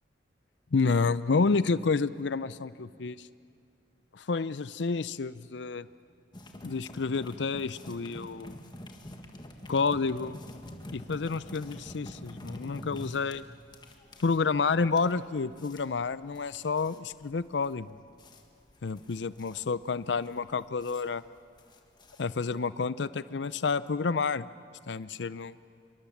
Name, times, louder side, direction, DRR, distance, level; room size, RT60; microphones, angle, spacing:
voice 1, 0.7-3.3 4.1-5.9 6.6-8.6 9.7-10.4 10.9-13.4 14.2-17.9 18.8-21.2 22.2-24.5 24.9-25.5, left 4 dB, 75° left, 16 dB, 0.6 m, -29 dB
sound 1, 6.3-22.6, left 1 dB, 25° left, 1.6 m, -47 dB
26.5 x 23.5 x 7.3 m, 2.3 s
head